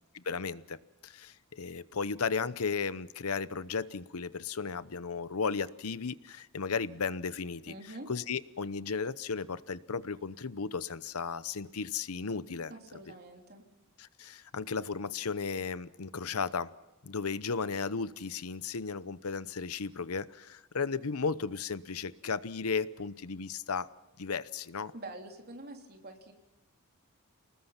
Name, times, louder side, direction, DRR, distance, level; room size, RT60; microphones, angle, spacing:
voice 1, 0.1-0.8 1.0-7.7 8.1-12.7 14.0-16.7 17.0-23.9 24.2-24.9, left 5 dB, 90° left, 16 dB, 0.8 m, -35 dB
voice 2, 7.7-8.1 12.7-13.6 24.9-26.3, right 2 dB, 45° right, 3 dB, 3.5 m, -46 dB
29.0 x 19.5 x 5.9 m, 1.0 s
head